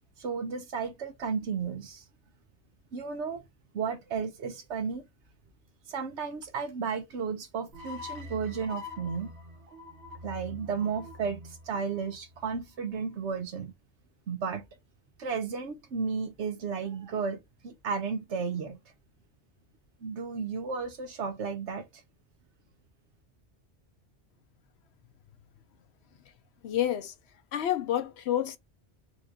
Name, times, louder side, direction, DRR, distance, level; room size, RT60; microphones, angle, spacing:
voice 1, 0.2-2.0 2.9-3.4 3.7-5.1 5.9-9.3 10.2-13.7 14.3-14.7 15.2-18.8 20.0-21.8, right 5 dB, 90° right, 1.2 m, -33 dB
sound 1, 7.7-12.9, left 3 dB, 65° right, 1.1 m, -45 dB
voice 2, 26.6-27.1 27.5-28.6, left 11 dB, 70° left, 0.9 m, -29 dB
4.2 x 2.5 x 2.8 m
omnidirectional pair, 1.1 m